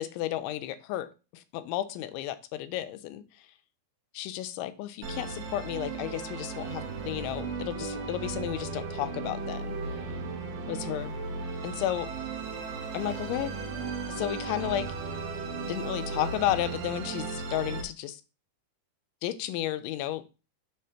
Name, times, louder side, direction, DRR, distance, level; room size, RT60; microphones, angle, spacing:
voice 1, 0.0-3.2 4.1-10.0 10.7-11.2 11.6-12.1 12.9-13.5 14.1-14.9 15.7-18.2 19.2-20.2, left 13 dB, 90° left, 11 dB, 3.0 m, -33 dB
Musical instrument, 5.0-17.8, right 4 dB, 65° right, 2.4 m, -36 dB
7.5 x 3.3 x 5.7 m, 0.31 s
omnidirectional pair, 5.2 m